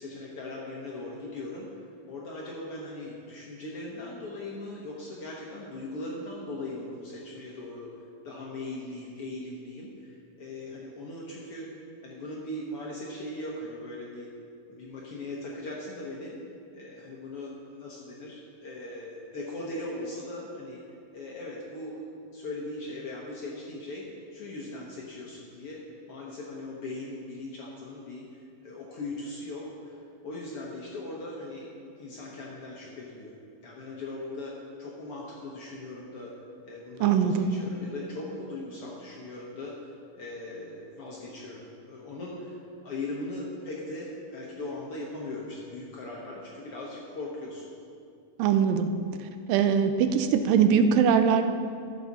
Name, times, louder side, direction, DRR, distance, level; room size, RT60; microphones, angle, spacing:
voice 1, 0.0-1.7 2.1-7.9 8.2-14.3 14.7-16.4 16.7-20.8 21.1-22.0 22.3-24.0 24.3-25.8 26.1-31.7 32.0-33.3 33.6-34.5 34.8-36.3 36.6-47.7, left 2 dB, 75° left, -4 dB, 1.3 m, -39 dB
voice 2, 37.0-37.5 48.4-48.9 49.5-51.4, right 7 dB, 80° right, 8 dB, 2.2 m, -21 dB
14.5 x 7.4 x 4.1 m, 2.4 s
omnidirectional pair, 4.2 m